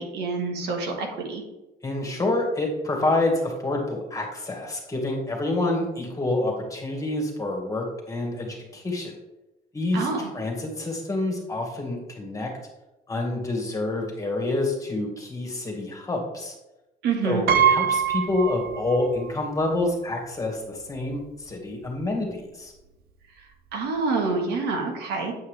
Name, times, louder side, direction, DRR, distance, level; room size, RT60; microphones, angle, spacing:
voice 1, 0.0-1.4 9.9-10.3 17.0-17.4 23.4-25.3, right 4 dB, 85° right, 2 dB, 1.7 m, -27 dB
voice 2, 1.8-9.1 9.7-10.1 10.3-12.5 13.1-16.5 17.2-22.7, left 2 dB, 20° left, 1 dB, 2.1 m, -27 dB
Piano, 17.5-19.3 19.6-19.7 20.9-21.0 21.3-21.5, right 8 dB, 65° right, 0.7 m, -23 dB
8.7 x 5.6 x 3.5 m, 0.99 s
cardioid pair, 110°, 17 cm